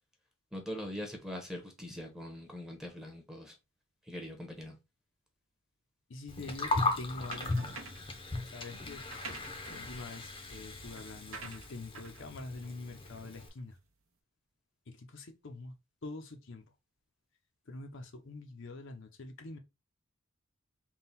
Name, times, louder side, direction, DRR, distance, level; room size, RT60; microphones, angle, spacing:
voice 1, 0.5-3.5 4.1-4.8, left 1 dB, ahead, 0.9 m, -42 dB
voice 2, 6.1-7.5 8.5-9.1 9.7-13.8 14.9-15.7 16.0-16.6 17.7-19.6, left 2 dB, 60° left, 0.7 m, -45 dB
Gurgling, 6.3-13.5, left 2 dB, 25° left, 0.7 m, -37 dB
sound 1, 7.3-8.2 8.9-13.6, right 4 dB, 75° right, 0.9 m, -49 dB
3.7 x 2.3 x 4.1 m
head